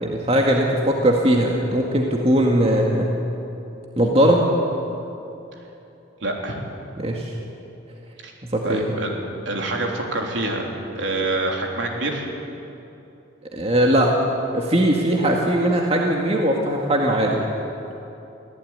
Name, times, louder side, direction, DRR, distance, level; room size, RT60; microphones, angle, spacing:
voice 1, 0.0-3.1 4.0-4.4 7.0-7.3 8.4-8.9 13.5-14.1 14.5-17.5, right 1 dB, 30° right, -1 dB, 2.0 m, -20 dB
voice 2, 6.2-6.6 8.2-8.3 8.6-9.2 9.5-10.7 11.0-12.3, right 2 dB, 65° right, 1 dB, 3.6 m, -26 dB
24.0 x 16.0 x 9.6 m, 2.9 s
head